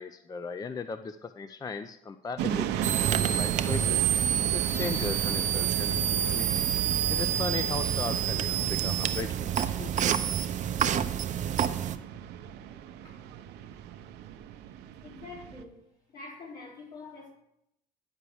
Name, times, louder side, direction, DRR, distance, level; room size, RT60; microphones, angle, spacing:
voice 1, 0.0-4.0 4.5-6.5 7.1-10.3, left 4 dB, 20° left, 10 dB, 0.4 m, -37 dB
sound 1, 2.4-15.6, right 10 dB, 80° right, 0.7 m, -37 dB
sound 2, 2.8-12.0, right 9 dB, 45° right, 0.6 m, -28 dB
voice 2, 15.0-15.8 16.1-17.3, left 3 dB, 65° left, -4 dB, 4.5 m, -45 dB
9.8 x 4.8 x 7.0 m, 0.81 s
cardioid pair, 110°, 17 cm